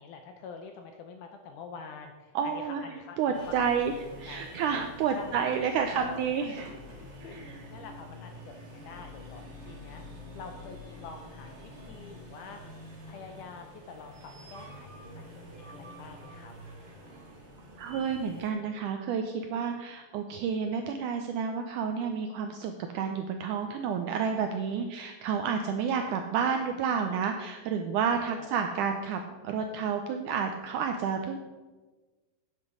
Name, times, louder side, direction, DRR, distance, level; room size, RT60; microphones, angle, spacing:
voice 1, 0.0-3.7 4.3-4.6 5.1-5.5 5.9-6.6 6.9-10.0 10.3-12.6 13.1-16.5 28.1-28.5, left 5 dB, 80° left, 5 dB, 1.9 m, -46 dB
voice 2, 2.3-2.8 3.2-3.9 4.2-6.7 7.2-7.6 17.8-31.4, right 6 dB, 85° right, 5 dB, 1.8 m, -30 dB
sound 1, 3.3-18.5, equal, 40° right, 0.9 m, -47 dB
9.9 x 7.8 x 4.9 m, 1.2 s
omnidirectional pair, 4.2 m